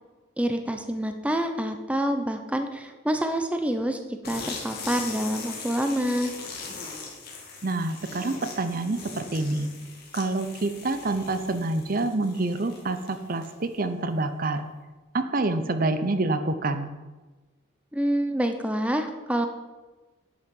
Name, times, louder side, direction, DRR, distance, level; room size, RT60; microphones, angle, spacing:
voice 1, 0.4-4.0 4.3-6.3 17.9-19.5, equal, 5° right, 6 dB, 0.7 m, -27 dB
sound 1, 4.2-13.7, left 4 dB, 50° left, 2.3 m, -40 dB
voice 2, 7.6-9.7 10.1-14.6 15.1-16.9, right 2 dB, 45° right, 9 dB, 0.7 m, -27 dB
11.0 x 8.3 x 5.3 m, 1.2 s
head